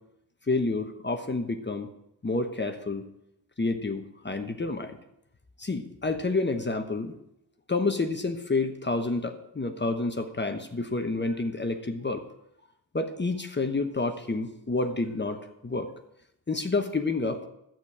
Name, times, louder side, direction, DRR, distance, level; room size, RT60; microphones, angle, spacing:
voice 1, 0.5-1.9 2.2-3.1 3.6-5.0 5.6-7.1 7.7-12.2 12.9-15.9 16.5-17.4, left 3 dB, 25° left, 6 dB, 1.0 m, -29 dB
11.5 x 9.1 x 4.9 m, 0.81 s
cardioid pair, 75°, 47 cm